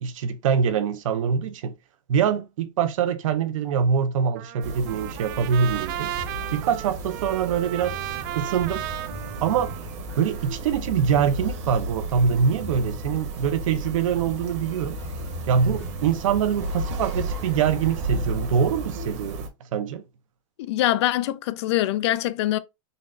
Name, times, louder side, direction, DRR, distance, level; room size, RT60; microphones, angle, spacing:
voice 1, 0.0-1.7 2.1-6.1 6.5-8.0 8.3-8.8 9.4-9.7 10.2-15.0 15.5-20.0, right 7 dB, 80° right, 0.7 m, -24 dB
Trumpet, 4.4-10.6, right 14 dB, 40° right, 0.4 m, -35 dB
sound 1, 4.6-19.5, right 2 dB, 60° right, 1.1 m, -34 dB
sound 2, 6.2-19.0, left 2 dB, 15° left, 0.8 m, -43 dB
voice 2, 20.6-22.6, left 14 dB, 55° left, 0.4 m, -23 dB
4.0 x 2.5 x 3.2 m
supercardioid pair, 160°, 17 cm